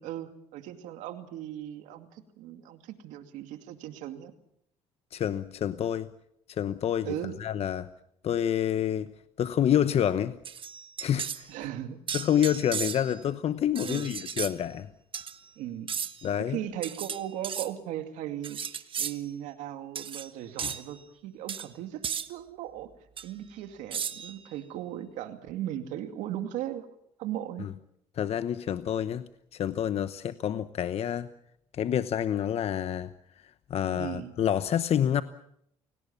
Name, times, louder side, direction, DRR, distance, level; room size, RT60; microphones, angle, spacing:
voice 1, 0.0-4.3 7.1-7.3 11.5-12.0 13.8-14.1 15.6-16.0 16.4-18.6 19.0-22.9 23.2-26.9 27.2-27.7 33.8-34.3, right 12 dB, 90° right, 2.4 m, -37 dB
voice 2, 5.1-6.1 6.5-7.1 7.4-7.9 8.2-10.4 11.0-11.5 12.1-14.9 16.2-16.6 20.6-20.7 27.6-27.7 28.1-31.3 31.7-33.1 33.7-35.2, left 10 dB, 55° left, 1.0 m, -28 dB
sound 1, 10.5-11.5 12.1-13.2 13.8-14.5 15.1-15.4 15.9-16.3 16.8-17.7 18.4-19.2 20.0-20.3 20.6-20.8 21.5-21.7 22.0-22.3 23.2-23.3 23.9-24.4, right 7 dB, 45° right, 1.4 m, -35 dB
28.5 x 18.5 x 7.2 m
cardioid pair, 90°, 12 cm